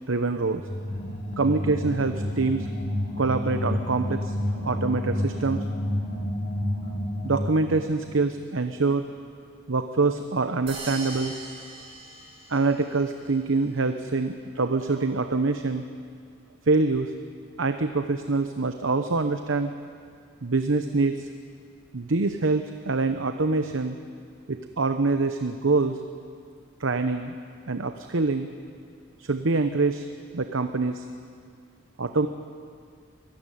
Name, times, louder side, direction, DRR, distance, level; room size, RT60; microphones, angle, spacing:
voice 1, 0.1-0.6 1.4-2.7 3.2-4.3 4.6-5.6 7.2-9.0 9.7-11.3 12.5-15.8 16.7-17.1 17.6-19.7 20.4-21.3 21.9-24.0 24.5-26.0 26.8-27.3 27.7-28.5 29.2-30.0 30.3-31.1 32.0-32.3, right 3 dB, 75° right, 8 dB, 0.9 m, -25 dB
sound 1, 0.5-7.9, left 1 dB, 50° left, 4.2 m, -30 dB
sound 2, 10.7-13.0, right 2 dB, 30° right, 4.6 m, -40 dB
24.0 x 15.0 x 9.2 m, 2.1 s
head